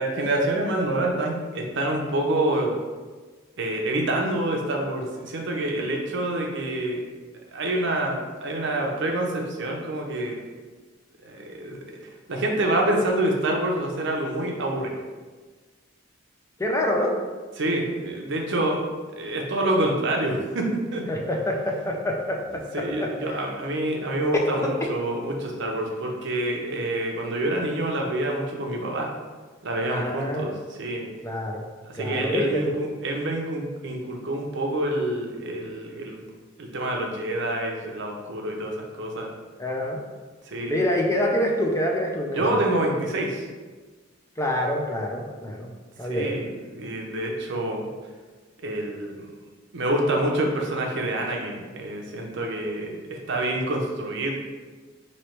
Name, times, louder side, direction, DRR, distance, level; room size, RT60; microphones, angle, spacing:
voice 1, 0.0-2.7 3.6-7.0 7.5-10.4 11.2-11.8 12.3-15.0 17.6-18.8 19.1-21.0 22.7-29.1 29.6-30.5 30.8-31.1 31.8-36.2 36.6-39.3 40.5-40.8 42.3-43.4 46.1-47.9 48.6-49.1 49.7-54.3, right 1 dB, 60° right, 0 dB, 0.7 m, -27 dB
voice 2, 16.6-17.1 21.1-23.4 24.3-24.7 29.9-30.5 31.2-31.6 32.0-32.7 39.6-40.0 40.7-42.4 44.4-45.7 46.0-46.4, left 1 dB, 15° left, 0 dB, 0.4 m, -26 dB
3.1 x 2.9 x 4.4 m, 1.4 s
head